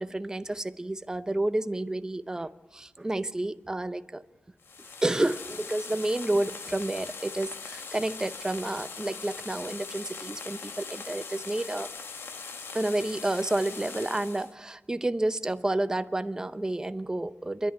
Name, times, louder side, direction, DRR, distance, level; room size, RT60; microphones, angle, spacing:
voice 1, 0.0-4.2 5.0-11.9 12.7-17.7, right 1 dB, 15° right, 12 dB, 0.7 m, -30 dB
sound 1, 4.6-14.5, left 5 dB, 65° left, 1.2 m, -41 dB
27.0 x 11.0 x 9.9 m, 1.1 s
wide cardioid pair, 115°, 4 cm